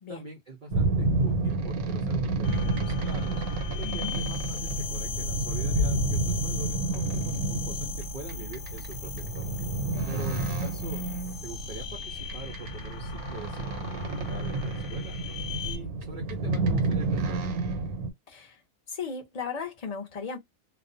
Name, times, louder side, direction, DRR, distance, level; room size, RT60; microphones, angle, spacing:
voice 1, 0.1-3.4 3.7-9.6 10.1-11.0 11.4-15.2 15.6-17.5, right 3 dB, 75° right, 0.4 m, -44 dB
sound 1, 0.7-18.1, right 2 dB, 90° right, 1.1 m, -30 dB
sound 2, 2.4-15.8, left 2 dB, 70° left, 0.9 m, -36 dB
voice 2, 3.8-4.1 9.9-10.2 18.3-18.6 18.9-20.4, left 5 dB, 50° left, 0.4 m, -36 dB
2.4 x 2.0 x 2.5 m
omnidirectional pair, 1.5 m